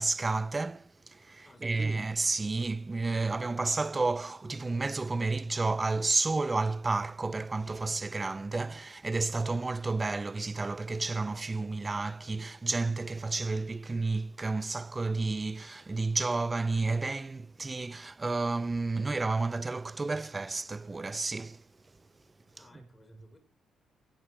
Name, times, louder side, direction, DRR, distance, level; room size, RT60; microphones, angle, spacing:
voice 1, 0.0-21.6, right 3 dB, 25° right, 0.7 m, -31 dB
voice 2, 1.4-1.9 22.5-23.4, left 2 dB, 15° left, 6.4 m, -58 dB
19.0 x 14.5 x 4.9 m
cardioid pair, 90°, 0 cm